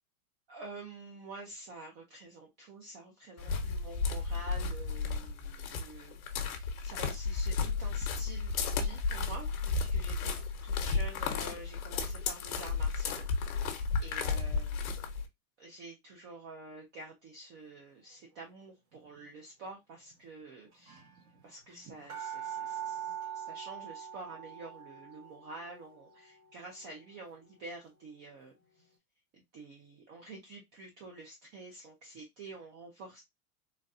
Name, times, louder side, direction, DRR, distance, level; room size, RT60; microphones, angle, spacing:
voice 1, 0.5-10.3 10.6-15.0 15.6-21.0 21.4-28.5 29.3-33.2, right 2 dB, 25° right, 0 dB, 0.5 m, -48 dB
sound 1, 3.4-15.3, left 4 dB, 70° left, 1.1 m, -33 dB
sound 2, 18.9-19.3 20.1-20.2 20.4-20.5 20.7-28.3 28.8-28.9, right 10 dB, 90° right, 2.3 m, -44 dB
3.9 x 2.2 x 2.6 m, 0.19 s
supercardioid pair, 155°, 44 cm